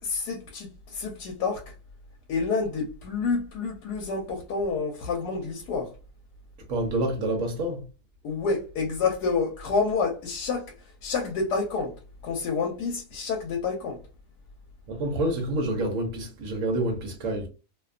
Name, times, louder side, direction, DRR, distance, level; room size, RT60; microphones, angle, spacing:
voice 1, 0.0-1.7 2.3-5.9 8.2-11.9 12.2-14.0, left 4 dB, 90° left, 1.2 m, -28 dB
voice 2, 6.7-7.8 14.9-17.5, right 1 dB, 65° right, 0.9 m, -28 dB
2.7 x 2.2 x 2.3 m
omnidirectional pair, 1.7 m